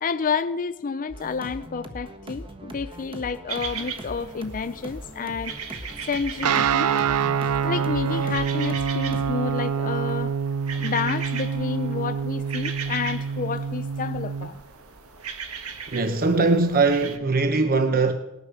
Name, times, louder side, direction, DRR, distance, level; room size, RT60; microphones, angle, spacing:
voice 1, 0.0-6.9 7.6-10.3 10.7-14.6, left 5 dB, 40° left, 0.5 m, -30 dB
sound 1, 1.1-9.3, equal, 25° right, 1.4 m, -40 dB
sound 2, 3.5-17.2, right 6 dB, 70° right, 1.6 m, -38 dB
Guitar, 6.4-14.5, right 6 dB, 90° right, 0.5 m, -26 dB
voice 2, 15.9-18.1, right 3 dB, 40° right, 0.9 m, -21 dB
19.5 x 10.5 x 6.9 m
head